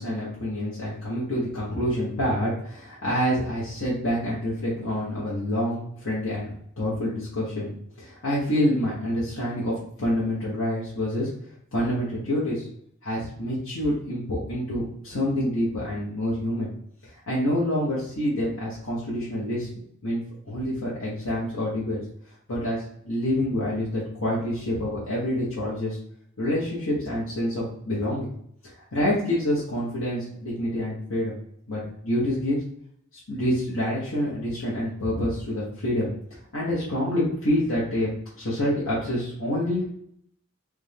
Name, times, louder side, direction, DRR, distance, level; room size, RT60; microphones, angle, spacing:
voice 1, 0.0-6.5 6.8-11.3 11.7-12.7 13.0-16.7 17.0-19.7 20.0-22.0 22.5-26.0 26.4-28.3 28.7-31.4 31.7-32.6 33.3-36.1 36.5-39.8, left 1 dB, 90° left, -7 dB, 1.3 m, -27 dB
3.5 x 3.4 x 3.5 m, 0.69 s
head